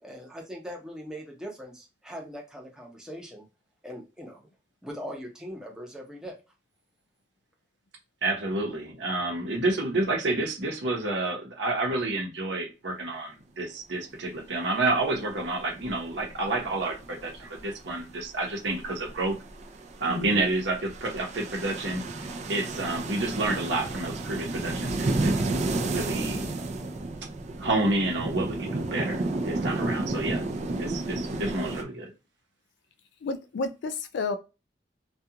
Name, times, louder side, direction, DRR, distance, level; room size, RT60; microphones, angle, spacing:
voice 1, 0.0-3.5 3.8-4.4 4.8-6.4, equal, 5° right, 0.7 m, -40 dB
voice 2, 8.2-19.4 20.0-22.0 22.5-26.5 27.6-30.5 30.8-32.1, right 2 dB, 75° right, 0.8 m, -29 dB
sound 1, 14.0-14.7 15.6-18.0 18.4-31.8, right 2 dB, 40° right, 0.4 m, -32 dB
voice 3, 20.1-20.4 33.2-34.4, left 3 dB, 75° left, 0.4 m, -31 dB
2.4 x 2.3 x 2.8 m
head